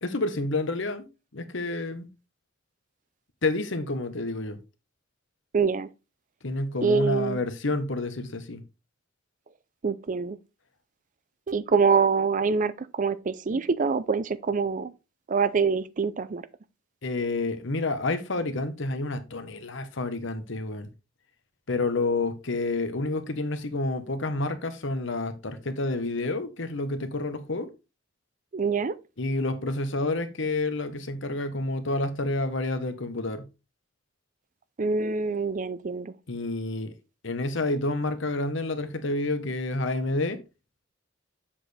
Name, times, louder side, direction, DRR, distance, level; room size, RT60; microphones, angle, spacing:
voice 1, 0.0-2.1 3.4-4.6 6.4-8.6 17.0-20.9 21.7-27.7 29.2-33.4 36.3-36.9 37.2-40.4, left 2 dB, 70° left, 1.1 m, -29 dB
voice 2, 5.5-5.9 6.8-7.4 9.8-10.4 11.5-14.9 15.3-16.4 28.5-28.9 34.8-36.1, right 5 dB, 40° right, 0.5 m, -25 dB
7.4 x 6.5 x 3.3 m
head